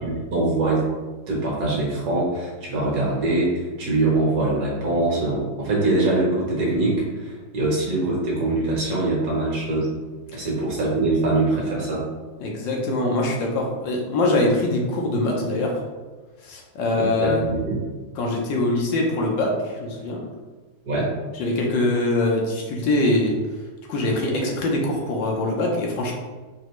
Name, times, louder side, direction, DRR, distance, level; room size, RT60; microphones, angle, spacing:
voice 1, 0.0-0.8 1.3-9.9 10.3-12.0 16.9-17.8 20.8-21.1, right 2 dB, 55° right, -5 dB, 1.7 m, -23 dB
voice 2, 12.4-15.7 16.4-17.4 18.2-20.2 21.4-23.3 23.9-26.1, left 2 dB, 70° left, 0 dB, 1.4 m, -23 dB
5.3 x 2.7 x 3.0 m, 1.3 s
omnidirectional pair, 2.2 m